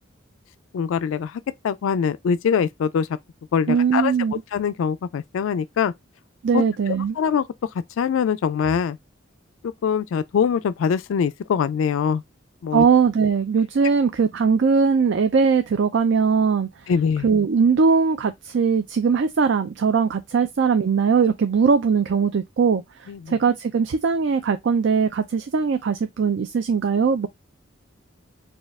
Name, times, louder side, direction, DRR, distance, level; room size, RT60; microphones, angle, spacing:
voice 1, 0.7-3.1 3.5-4.1 4.5-5.9 6.5-7.4 8.0-9.0 9.6-12.2 12.6-12.8 16.9-17.3 23.1-23.3, left 7 dB, 85° left, 0.3 m, -23 dB
voice 2, 3.7-4.3 6.4-7.2 12.7-16.7 17.2-27.3, right 5 dB, 65° right, 0.4 m, -20 dB
4.3 x 2.3 x 3.4 m
head